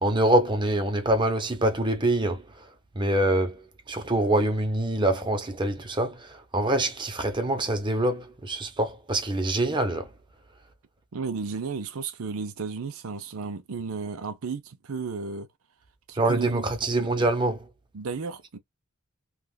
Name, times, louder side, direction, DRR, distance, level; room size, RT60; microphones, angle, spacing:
voice 1, 0.0-2.4 3.0-3.6 3.9-10.1 16.1-17.6, right 1 dB, 20° right, 0.8 m, -25 dB
voice 2, 11.1-15.5 16.1-16.6 17.0-17.1 17.9-18.6, right 5 dB, 80° right, 0.6 m, -33 dB
3.4 x 2.4 x 2.3 m
head